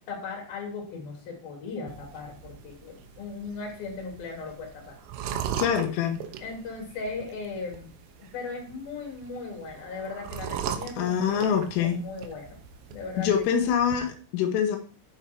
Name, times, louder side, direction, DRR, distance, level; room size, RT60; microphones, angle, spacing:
voice 1, 0.1-5.0 5.3-5.4 6.4-7.9 8.3-11.2 11.4-12.6 12.9-13.3, left 4 dB, 50° left, 1 dB, 4.5 m, -37 dB
sound 1, 1.9-14.0, right 9 dB, 90° right, 3.6 m, -39 dB
voice 2, 5.6-6.2 11.0-12.0 13.2-14.8, left 8 dB, 90° left, 4 dB, 3.7 m, -25 dB
9.0 x 7.1 x 4.4 m, 0.39 s
omnidirectional pair, 5.6 m